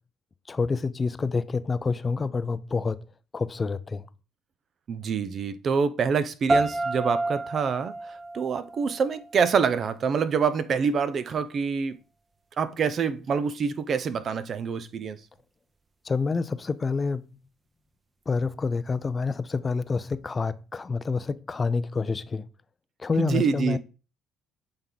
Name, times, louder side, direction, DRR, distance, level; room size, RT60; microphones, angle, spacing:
voice 1, 0.5-3.0 3.3-4.1 16.0-17.3 18.3-22.5 23.0-23.8, left 4 dB, 30° left, 0.5 m, -28 dB
voice 2, 4.9-7.9 8.3-12.0 12.6-15.2 23.2-23.8, right 6 dB, 50° right, 0.7 m, -26 dB
sound 1, 6.5-9.5, right 2 dB, 30° right, 1.0 m, -29 dB
7.9 x 3.6 x 3.9 m
hypercardioid pair, 65°, 0 cm